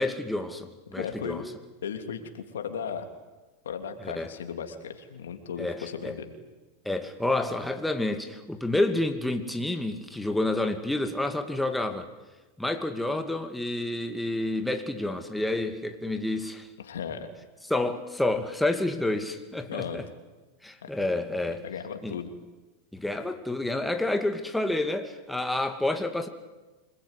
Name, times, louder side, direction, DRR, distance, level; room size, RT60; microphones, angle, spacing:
voice 1, 0.0-1.4 4.0-4.3 5.6-6.2 6.8-12.1 12.6-16.7 17.7-20.1 20.6-21.6 22.0-22.2 22.9-26.3, left 2 dB, 5° left, 6 dB, 2.4 m, -29 dB
voice 2, 0.9-1.5 1.8-3.1 3.6-6.3 16.8-17.3 19.7-20.0 20.8-20.9 21.6-22.3, left 7 dB, 85° left, 6 dB, 3.1 m, -36 dB
27.0 x 20.5 x 10.0 m, 1.2 s
hypercardioid pair, 110°, 0 cm